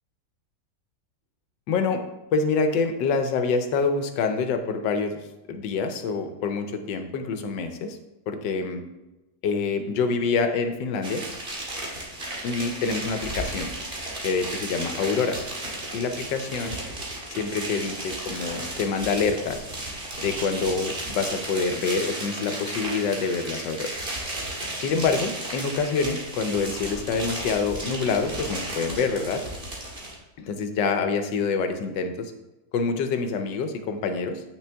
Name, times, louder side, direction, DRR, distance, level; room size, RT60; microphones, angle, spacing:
voice 1, 1.7-2.0 2.3-5.2 5.5-8.0 8.3-8.8 9.4-11.2 12.4-13.7 14.2-15.4 15.9-16.8 17.4-19.6 20.2-23.9 24.8-29.4 30.4-32.3 32.7-34.4, left 4 dB, 85° left, 7 dB, 1.5 m, -26 dB
sound 1, 11.0-30.2, right 1 dB, 35° right, 1.8 m, -34 dB
8.9 x 6.1 x 3.4 m, 1.0 s
omnidirectional pair, 1.9 m